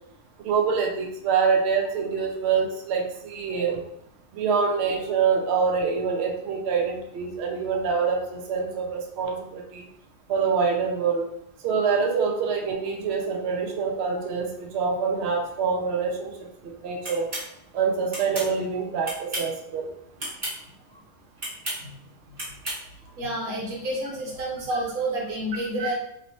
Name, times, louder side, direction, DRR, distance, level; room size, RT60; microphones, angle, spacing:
voice 1, 0.4-3.8 4.3-9.8 10.3-11.2 11.6-16.3 16.6-17.3 17.7-19.9 25.8-25.9, right 5 dB, 60° right, 1 dB, 0.8 m, -25 dB
sound 1, 17.0-17.5 18.1-18.5 19.0-19.6 20.2-20.6 21.4-21.8 22.4-22.8, right 1 dB, 30° right, 1.2 m, -32 dB
voice 2, 23.2-25.9, right 1 dB, 85° right, -3 dB, 1.5 m, -29 dB
2.9 x 2.8 x 2.9 m, 0.75 s
omnidirectional pair, 1.5 m